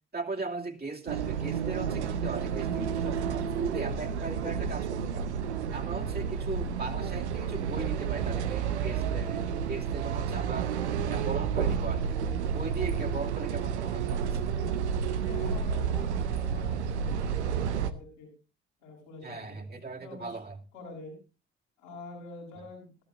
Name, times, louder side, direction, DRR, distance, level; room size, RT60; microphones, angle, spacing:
voice 1, 0.1-5.3 5.7-10.7 11.1-12.2 12.5-14.5 19.2-20.5, right 3 dB, 30° right, 0 dB, 2.7 m, -38 dB
sound 1, 1.1-17.9, right 7 dB, 85° right, 0.7 m, -30 dB
voice 2, 15.1-18.3 18.8-20.4 20.7-21.1 21.8-22.9, left 2 dB, 80° left, -3 dB, 7.8 m, -46 dB
20.0 x 14.0 x 2.6 m, 0.32 s
figure-of-eight pair, 45°, 33 cm